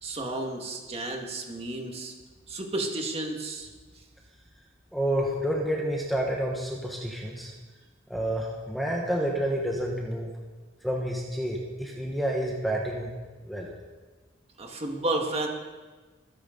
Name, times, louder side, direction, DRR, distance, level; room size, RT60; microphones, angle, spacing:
voice 1, 0.0-2.1 2.5-3.7 14.6-15.5, right 2 dB, 30° right, 1 dB, 1.9 m, -32 dB
voice 2, 4.9-7.5 8.1-10.3 10.8-13.1 13.4-13.7, right 1 dB, ahead, -1 dB, 1.3 m, -29 dB
24.0 x 9.7 x 3.9 m, 1.3 s
head